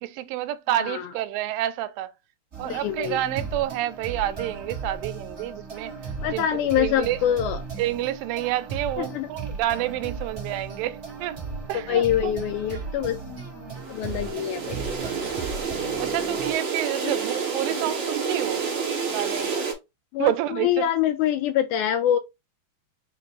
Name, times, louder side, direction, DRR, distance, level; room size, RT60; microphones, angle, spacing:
voice 1, 0.0-2.1 2.6-7.2 7.8-11.4 11.7-12.3 14.1-14.3 16.0-18.6 19.1-19.5 20.2-20.9, right 13 dB, 85° right, 2.3 m, -29 dB
sound 1, 2.5-16.5, right 4 dB, 35° right, 1.2 m, -36 dB
voice 2, 2.7-3.2 6.2-7.6 9.0-9.3 11.9-13.2 13.9-14.8 17.0-17.1 20.1-22.2, left 10 dB, 80° left, 1.8 m, -25 dB
sound 2, 13.8-19.7, right 5 dB, 50° right, 1.8 m, -29 dB
5.9 x 2.5 x 3.1 m
omnidirectional pair, 4.0 m